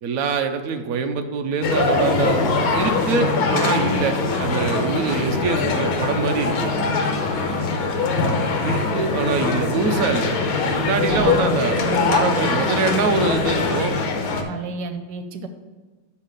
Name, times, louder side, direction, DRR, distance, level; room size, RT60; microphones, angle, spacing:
voice 1, 0.0-6.8 8.6-10.4 10.7-14.0, right 5 dB, 90° right, 6 dB, 0.7 m, -24 dB
sound 1, 1.6-14.4, left 4 dB, 75° left, 1.8 m, -22 dB
voice 2, 11.0-12.3 14.5-15.5, right 5 dB, 65° right, 7 dB, 1.2 m, -31 dB
5.9 x 5.5 x 6.5 m, 1.3 s
omnidirectional pair, 2.3 m